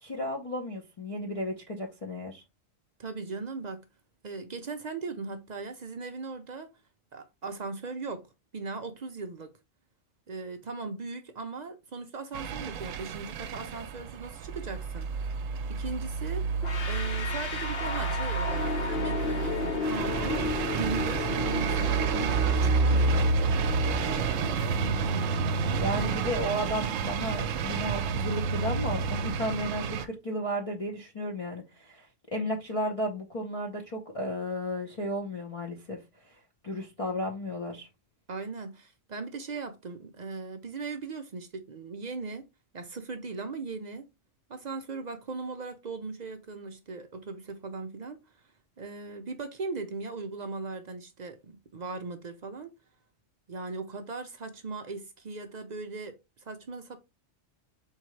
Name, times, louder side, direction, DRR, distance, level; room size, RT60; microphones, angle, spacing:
voice 1, 0.0-2.4 25.8-37.9, equal, 35° left, 0.7 m, -34 dB
voice 2, 3.0-3.8 4.2-6.7 7.1-9.6 10.3-15.4 15.7-16.6 16.9-23.6 38.3-42.5 42.7-44.1 44.5-48.2 48.8-52.7 53.5-57.0, right 4 dB, 55° right, 0.5 m, -38 dB
sound 1, 12.3-30.1, right 5 dB, 80° right, 1.0 m, -29 dB
sound 2, 16.6-27.5, left 4 dB, 55° left, 1.1 m, -35 dB
4.5 x 3.6 x 3.1 m
omnidirectional pair, 1.3 m